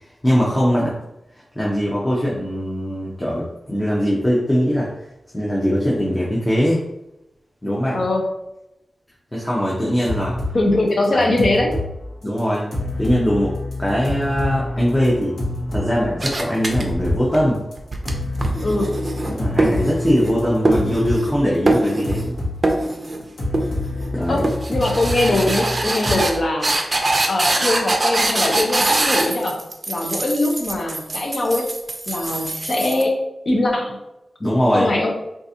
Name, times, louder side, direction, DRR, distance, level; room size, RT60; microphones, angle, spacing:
voice 1, 0.2-1.0 1.5-5.0 5.3-6.8 7.6-8.1 9.3-10.4 11.3-11.4 12.2-12.7 13.0-15.4 15.7-17.6 19.3-22.3 24.1-24.5 34.4-34.9, equal, 10° left, -6 dB, 0.6 m, -21 dB
voice 2, 7.9-8.3 10.5-11.8 18.6-18.9 24.3-26.7 27.3-31.7 32.1-33.1 33.5-34.0 34.7-35.1, left 2 dB, 55° left, 1 dB, 0.7 m, -21 dB
sound 1, 10.0-10.6 10.9-11.9 12.2-12.4 12.7-15.9 16.2-17.3 17.7-17.8 18.0-21.3 21.5-22.6 23.0-26.2, left 1 dB, 80° left, 1.0 m, -27 dB
sound 2, 16.2-17.3 17.8-20.3 20.6-21.4 21.7-22.3 22.6-23.2 23.5-24.1 24.4-33.0, right 2 dB, 35° right, 0.5 m, -23 dB
3.9 x 2.4 x 2.7 m, 0.89 s
wide cardioid pair, 105°, 0 cm